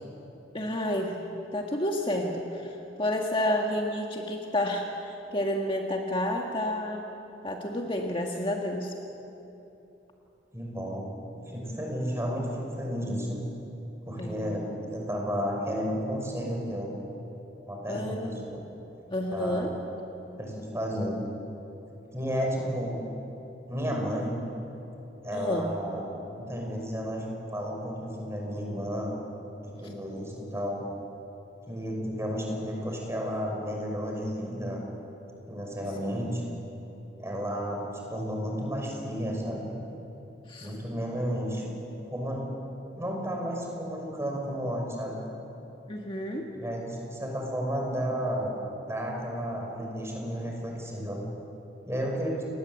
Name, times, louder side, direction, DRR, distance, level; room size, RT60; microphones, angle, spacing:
voice 1, 0.5-1.2 1.5-7.0 7.4-8.9 14.2-14.4 17.9-18.3 19.1-19.7 25.3-25.7 29.8-29.9 36.1-36.3 40.5-40.7 45.9-46.5, left 1 dB, 30° left, 1 dB, 1.7 m, -30 dB
voice 2, 10.5-11.1 11.5-13.4 14.0-16.9 17.6-18.6 19.3-19.7 20.4-21.2 22.1-23.0 23.7-24.4 25.2-26.1 26.3-27.3 27.5-29.1 29.6-30.8 31.7-34.8 35.5-36.4 37.2-37.8 38.1-39.7 40.6-41.6 42.1-42.5 43.0-45.1 46.5-48.6 48.9-51.2 51.8-52.4, equal, 15° right, 0 dB, 5.9 m, -32 dB
29.5 x 20.0 x 8.2 m, 3.0 s
head